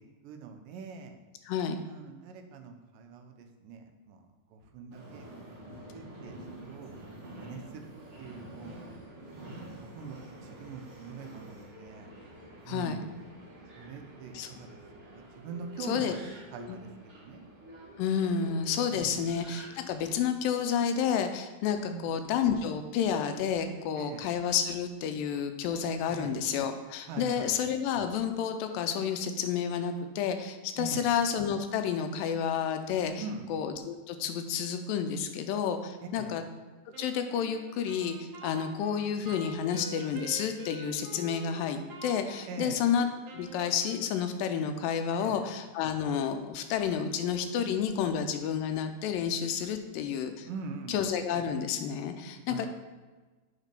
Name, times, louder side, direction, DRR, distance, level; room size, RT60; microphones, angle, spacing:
voice 1, 0.2-1.2 1.8-4.3 4.5-5.3 5.9-6.9 7.4-7.9 8.2-8.8 9.8-12.1 12.7-13.1 13.8-14.8 15.1-17.4 18.9-19.2 21.9-22.1 24.0-24.2 26.0-26.3 27.1-27.5 30.8-31.1 33.2-33.5 36.0-36.4 42.5-42.8 45.1-45.4 50.4-51.0 52.5-52.7, right 5 dB, 80° right, 5 dB, 2.2 m, -43 dB
voice 2, 1.5-1.8 12.7-13.1 14.3-14.5 15.9-16.1 16.6-16.8 18.0-33.2 33.5-36.4 37.0-43.1 43.3-50.5 50.9-52.7, left 7 dB, 85° left, 7 dB, 2.2 m, -30 dB
Subway metro underground, 4.9-20.2, right 1 dB, 45° right, 0.8 m, -48 dB
Wind instrument woodwind instrument, 36.9-44.4, right 2 dB, 65° right, 2.3 m, -46 dB
7.3 x 4.1 x 5.2 m, 1.3 s
omnidirectional pair, 4.0 m